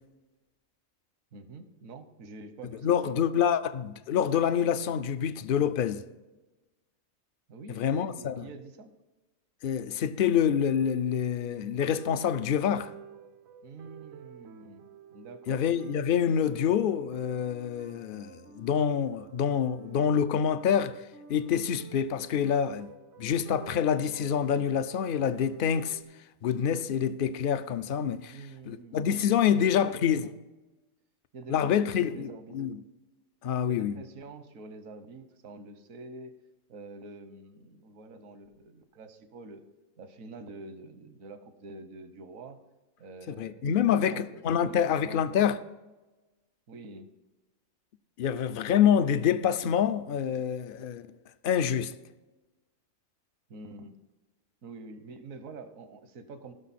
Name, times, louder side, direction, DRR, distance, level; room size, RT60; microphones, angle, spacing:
voice 1, 1.3-3.0 7.5-8.9 13.6-15.6 28.2-30.3 31.3-32.6 33.7-36.3 36.7-39.6 40.0-42.6 43.0-45.4 46.7-47.1 53.5-53.9 54.6-56.5, right 3 dB, 80° right, 1.3 m, -46 dB
voice 2, 2.8-6.0 7.7-8.4 9.6-12.9 15.5-22.9 23.2-26.0 26.4-28.4 28.7-30.3 31.5-32.8 33.4-33.9 43.3-45.6 48.2-51.1 51.4-51.9, left 8 dB, 60° left, 0.5 m, -27 dB
sound 1, 11.6-26.0, right 7 dB, 65° right, 0.8 m, -51 dB
16.0 x 6.4 x 4.2 m
omnidirectional pair, 1.4 m